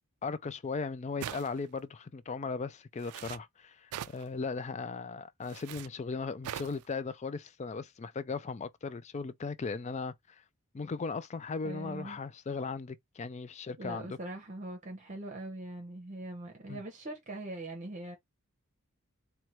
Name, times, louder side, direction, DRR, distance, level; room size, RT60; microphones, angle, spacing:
voice 1, 0.2-10.4 10.7-14.1 16.7-16.8, left 4 dB, 30° left, 0.3 m, -37 dB
sound 1, 1.2-1.8 3.0-3.4 3.9-4.2 5.4-5.9 6.4-6.8, right 10 dB, 80° right, 0.3 m, -41 dB
voice 2, 11.6-12.2 13.8-18.2, right 1 dB, 35° right, 0.8 m, -42 dB
4.4 x 2.3 x 3.0 m
head